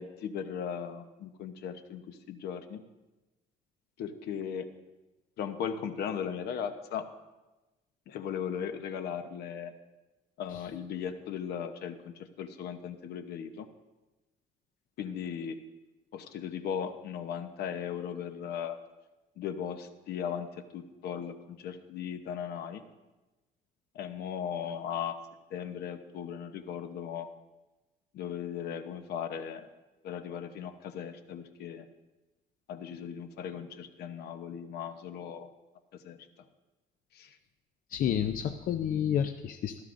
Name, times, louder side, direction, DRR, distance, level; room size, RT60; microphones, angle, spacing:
voice 1, 0.0-2.8 4.0-4.7 5.4-7.1 8.1-9.7 10.4-13.7 15.0-15.6 16.1-18.8 19.4-22.8 23.9-25.2 25.5-27.3 28.1-29.7 30.0-31.9 32.7-35.5 35.9-36.2 37.1-37.4, left 8 dB, 70° left, 9 dB, 1.0 m, -37 dB
voice 2, 37.9-39.8, left 9 dB, 55° left, 8 dB, 0.6 m, -30 dB
16.0 x 13.0 x 2.6 m, 1.1 s
cardioid pair, 110°, 17 cm